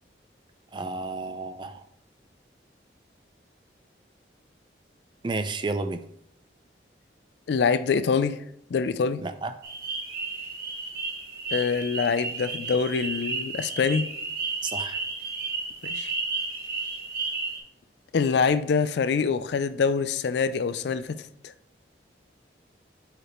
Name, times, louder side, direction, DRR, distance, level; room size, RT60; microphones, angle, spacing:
voice 1, 0.7-1.9 5.2-6.0 9.2-9.5 14.6-15.0, right 3 dB, 25° right, 0.4 m, -31 dB
voice 2, 7.5-8.4 8.7-9.2 11.5-14.1 15.8-16.1 18.1-21.5, left 5 dB, 70° left, 0.4 m, -25 dB
sound 1, 9.6-17.6, right 3 dB, 55° right, 1.4 m, -33 dB
4.9 x 4.9 x 4.3 m
head